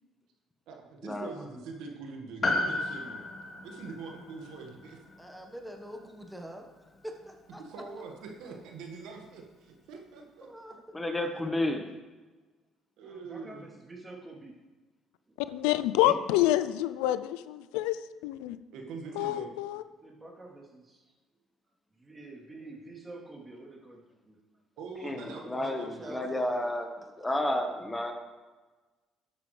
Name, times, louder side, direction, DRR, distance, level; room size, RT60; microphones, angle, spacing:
voice 1, 0.7-3.2 3.6-5.0 7.6-10.5 13.0-13.7 18.7-19.5 24.8-26.2, right 4 dB, 75° right, 2 dB, 1.7 m, -43 dB
Piano, 2.4-7.0 7.3-7.4, left 2 dB, 40° left, 2.1 m, -35 dB
voice 2, 5.2-6.7 7.0-7.6 10.4-10.7 25.2-26.7, equal, 5° right, 3 dB, 1.3 m, -45 dB
voice 3, 10.9-11.8 16.0-16.2 25.0-26.9 27.2-28.1, left 1 dB, 15° left, 5 dB, 1.3 m, -31 dB
voice 4, 13.0-14.5 20.0-21.0 22.0-24.4, right 2 dB, 25° right, -4 dB, 3.2 m, -48 dB
voice 5, 15.5-18.0 18.2-18.6 19.2-19.8, left 14 dB, 90° left, 13 dB, 0.4 m, -27 dB
12.5 x 8.3 x 3.3 m, 1.3 s
supercardioid pair, 75°, 0 cm